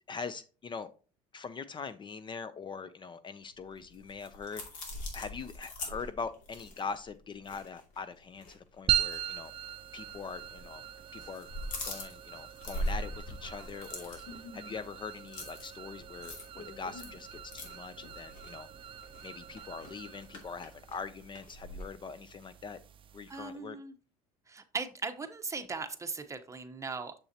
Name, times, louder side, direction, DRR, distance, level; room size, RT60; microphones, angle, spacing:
voice 1, 0.1-0.9 1.3-4.6 5.1-9.5 9.9-10.8 11.1-11.5 11.8-18.7 19.2-22.8 23.1-23.8, left 5 dB, 35° left, 14 dB, 0.5 m, -42 dB
sound 1, 3.6-8.1 8.3-8.5 9.0-9.2 10.1-10.7 11.0-21.8, left 1 dB, 60° left, 2.6 m, -42 dB
sound 2, 8.9-23.6, right 10 dB, 35° right, 0.6 m, -40 dB
voice 2, 23.3-23.9 24.5-27.1, right 4 dB, 20° right, 7 dB, 1.0 m, -38 dB
6.9 x 6.9 x 2.9 m, 0.36 s
supercardioid pair, 95°, 15 cm